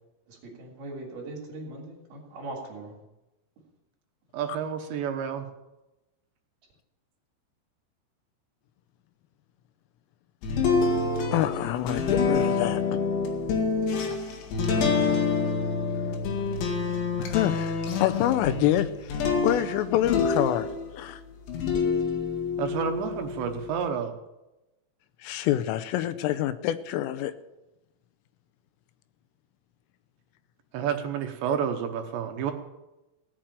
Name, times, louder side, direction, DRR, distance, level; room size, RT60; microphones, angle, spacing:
voice 1, 0.3-3.0, right 2 dB, 55° right, 0 dB, 3.7 m, -40 dB
voice 2, 4.3-5.4 22.6-24.1 30.7-32.5, right 8 dB, 75° right, 5 dB, 2.8 m, -30 dB
sound 1, 10.4-21.0 21.5-23.8, left 5 dB, 65° left, 4.1 m, -27 dB
voice 3, 11.3-12.8 14.7-15.2 17.2-18.9 19.1-20.7 20.9-21.2 25.2-27.3, left 13 dB, 85° left, 11 dB, 3.1 m, -27 dB
17.5 x 7.6 x 8.9 m, 0.98 s
omnidirectional pair, 6.0 m